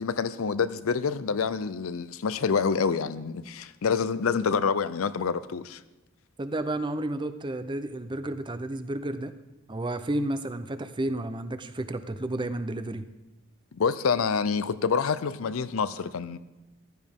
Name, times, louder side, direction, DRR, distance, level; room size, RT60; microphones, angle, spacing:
voice 1, 0.0-5.8 13.7-16.4, left 5 dB, 80° left, 0.5 m, -27 dB
voice 2, 6.4-9.3 9.7-13.1, right 1 dB, 25° right, 0.6 m, -31 dB
15.0 x 11.5 x 3.6 m
head